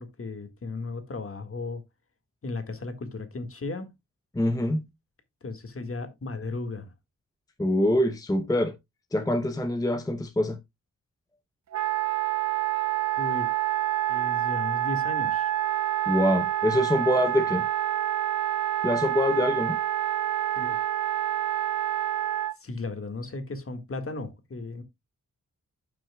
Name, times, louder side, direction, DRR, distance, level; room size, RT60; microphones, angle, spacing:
voice 1, 0.0-1.8 2.4-3.9 5.4-6.9 13.2-13.5 14.1-15.5 20.6-20.8 22.6-24.8, left 3 dB, 40° left, 1.7 m, -35 dB
voice 2, 4.3-4.9 7.6-8.7 9.1-10.6 16.1-17.7 18.8-19.8, left 1 dB, 10° left, 0.7 m, -24 dB
Wind instrument woodwind instrument, 11.7-22.5, right 12 dB, 55° right, 0.6 m, -27 dB
12.5 x 6.1 x 2.2 m
wide cardioid pair, 175°, 34 cm